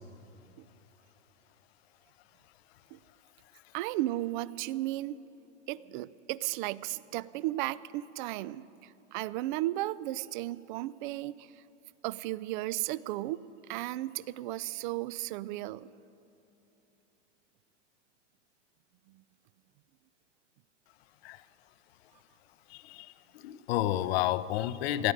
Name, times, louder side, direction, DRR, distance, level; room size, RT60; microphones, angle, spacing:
voice 1, 3.7-5.2 5.7-11.5 12.0-15.9, right 16 dB, 45° right, 20 dB, 0.4 m, -35 dB
voice 2, 22.7-23.1 23.4-25.1, left 14 dB, 55° left, 15 dB, 0.7 m, -30 dB
19.5 x 13.5 x 5.2 m, 2.9 s
hypercardioid pair, 110°, 37 cm